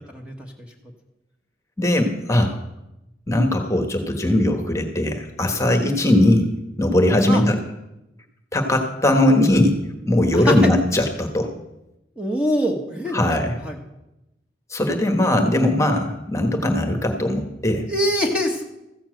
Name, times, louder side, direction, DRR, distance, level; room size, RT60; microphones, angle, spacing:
voice 1, 1.8-2.6 3.3-6.5 6.8-7.6 8.5-9.8 10.1-11.5 13.1-13.6 14.7-17.9, left 1 dB, 15° left, 5 dB, 1.2 m, -19 dB
voice 2, 10.3-10.7 12.2-13.8 17.9-18.6, equal, 5° right, 1 dB, 1.1 m, -24 dB
14.5 x 7.1 x 7.7 m, 0.93 s
head